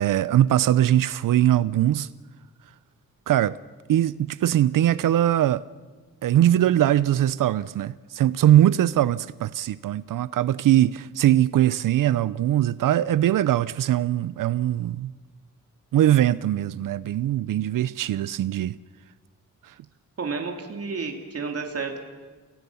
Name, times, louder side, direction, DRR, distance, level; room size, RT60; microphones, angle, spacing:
voice 1, 0.0-2.1 3.3-3.6 3.9-5.6 6.2-15.1 15.9-18.8, right 12 dB, 80° right, 0.6 m, -21 dB
voice 2, 20.2-22.0, right 4 dB, 45° right, 2.8 m, -31 dB
28.5 x 17.5 x 7.1 m
wide cardioid pair, 110°, 32 cm